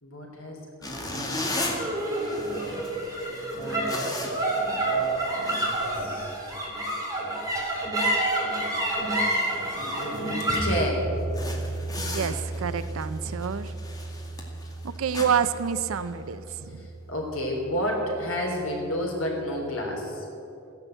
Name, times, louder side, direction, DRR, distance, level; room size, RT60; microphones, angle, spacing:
voice 1, 0.0-1.7 3.3-4.3 4.8-6.3 9.7-11.1 16.8-20.3, left 1 dB, 75° left, 0 dB, 3.6 m, -32 dB
sound 1, 0.8-6.5 6.8-7.0 7.5-7.7 8.1-8.2 8.7-8.8 9.0-10.8 11.3-16.4, left 1 dB, 20° left, 2.1 m, -37 dB
sound 2, 1.5-18.1, right 1 dB, 15° right, 3.4 m, -30 dB
voice 2, 12.0-13.7 15.0-16.8, right 7 dB, 80° right, 13 dB, 0.5 m, -28 dB
15.5 x 10.5 x 7.8 m, 2.9 s
head